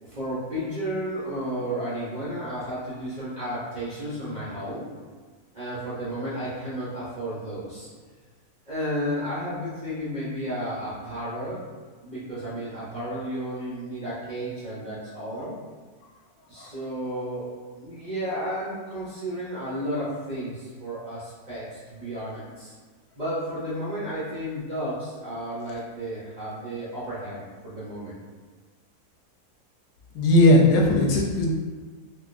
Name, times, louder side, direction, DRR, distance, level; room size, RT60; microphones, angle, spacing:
voice 1, 0.0-4.9 5.5-7.9 8.7-11.6 12.0-15.5 16.5-22.7 23.1-28.1, equal, 40° right, -10 dB, 0.6 m, -32 dB
voice 2, 30.1-31.5, left 1 dB, 85° left, -2 dB, 1.2 m, -18 dB
4.0 x 2.4 x 2.5 m, 1.4 s
omnidirectional pair, 1.7 m